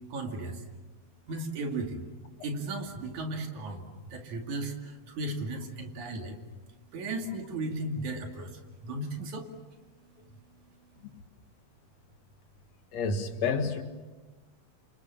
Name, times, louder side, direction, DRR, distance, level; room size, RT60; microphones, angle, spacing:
voice 1, 0.1-0.6 1.3-2.1 2.4-6.4 6.9-9.5, right 2 dB, 85° right, 4 dB, 3.9 m, -35 dB
voice 2, 12.9-13.8, left 4 dB, 70° left, 7 dB, 2.8 m, -29 dB
28.5 x 27.0 x 7.2 m, 1.2 s
omnidirectional pair, 3.3 m